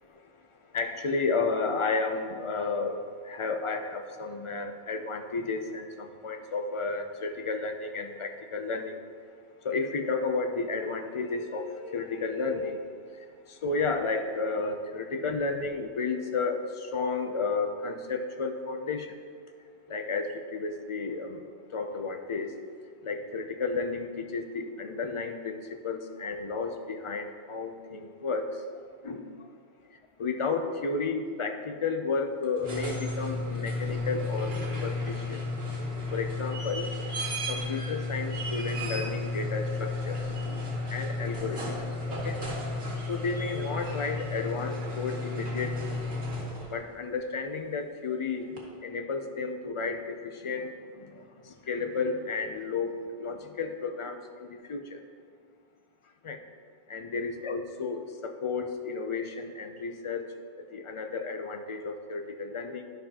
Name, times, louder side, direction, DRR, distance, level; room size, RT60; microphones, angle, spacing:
voice 1, 0.7-3.0 3.2-9.0 9.6-12.9 13.5-19.2 19.9-21.4 21.7-22.5 23.0-28.6 29.0-29.5 30.2-34.5 34.8-35.4 36.1-36.8 37.5-40.2 40.9-41.7 42.1-42.4 43.1-45.9 46.7-48.5 48.8-55.0 56.2-56.4 56.9-60.2 60.7-62.9, left 4 dB, 45° left, 6 dB, 0.4 m, -32 dB
sound 1, 32.4-46.8 48.6-48.7, left 2 dB, 70° right, 1.5 m, -33 dB
11.0 x 5.5 x 2.8 m, 2.1 s
omnidirectional pair, 1.0 m